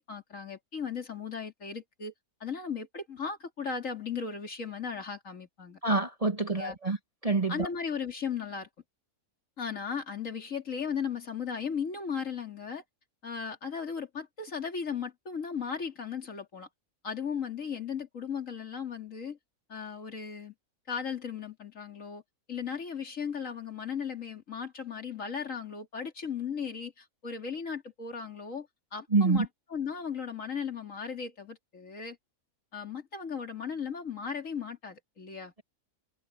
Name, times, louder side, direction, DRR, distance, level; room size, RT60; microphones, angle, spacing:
voice 1, 0.1-2.1 2.4-5.8 6.4-6.8 7.5-8.7 9.6-12.8 13.2-16.7 17.0-19.4 19.7-20.5 20.9-22.2 22.5-32.2 32.7-35.5, left 6 dB, 60° left, 3.0 m, -36 dB
voice 2, 5.8-7.0 7.2-7.7 29.1-29.5, right 3 dB, 25° right, 1.2 m, -26 dB
omnidirectional pair, 1.5 m